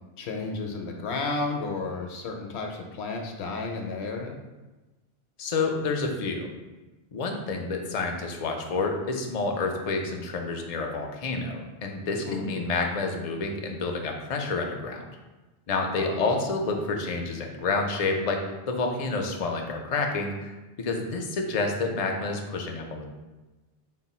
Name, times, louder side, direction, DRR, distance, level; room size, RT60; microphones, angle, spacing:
voice 1, 0.2-4.4 12.3-12.7 16.0-16.3, left 3 dB, 75° left, 2 dB, 0.8 m, -32 dB
voice 2, 5.4-6.5 7.1-15.0 15.7-23.1, left 3 dB, 50° left, 2 dB, 0.4 m, -29 dB
4.0 x 2.2 x 4.1 m, 1.1 s
omnidirectional pair, 1.1 m